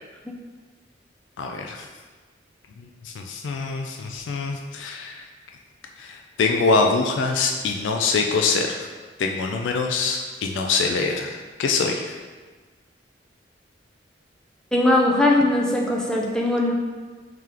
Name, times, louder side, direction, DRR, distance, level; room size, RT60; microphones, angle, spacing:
voice 1, 1.4-1.9 2.8-5.2 6.0-8.9 9.2-12.2, left 4 dB, 80° left, 2 dB, 0.3 m, -24 dB
voice 2, 14.7-16.7, left 1 dB, 5° left, -2 dB, 0.4 m, -20 dB
3.2 x 2.9 x 3.7 m, 1.4 s
head